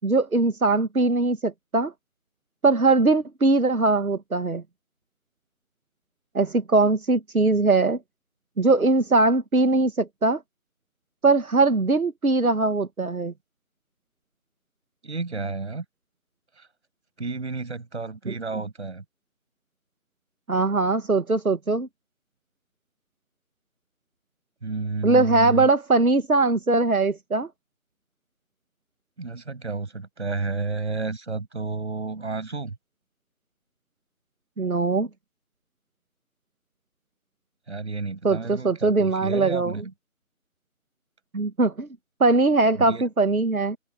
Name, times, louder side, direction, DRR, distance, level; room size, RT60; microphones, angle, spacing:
voice 1, 0.0-1.9 2.6-4.6 6.3-8.0 8.6-10.4 11.2-13.3 18.2-18.3 20.5-21.9 25.0-27.5 34.6-35.1 38.2-39.8 41.3-41.9 42.2-43.8, right 3 dB, 80° right, 1.7 m, -21 dB
voice 2, 15.0-15.8 16.6-16.7 17.2-19.0 24.6-25.7 29.2-32.8 37.7-39.9 42.7-43.0, right 3 dB, 50° right, 7.8 m, -31 dB
figure-of-eight pair, 160°, 42 cm